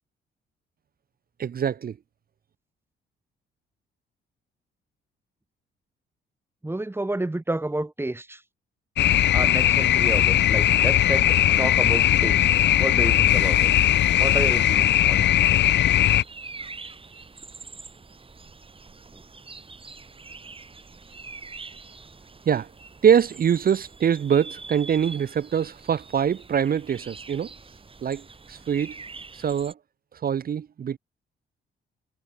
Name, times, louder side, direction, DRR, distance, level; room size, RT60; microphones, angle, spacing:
voice 1, 1.4-1.9 22.5-22.7 23.0-27.5 28.0-28.2 28.5-28.9 29.3-29.7 30.2-31.0, right 8 dB, 50° right, 1.3 m, -23 dB
voice 2, 6.6-8.4 9.3-12.5 12.8-13.7 14.2-15.3 19.1-19.2, right 2 dB, 10° right, 3.2 m, -30 dB
sound 1, 9.0-16.2, left 12 dB, 60° left, 0.7 m, -19 dB
sound 2, 15.6-29.7, right 4 dB, 25° right, 4.9 m, -44 dB
cardioid pair, 90°, 20 cm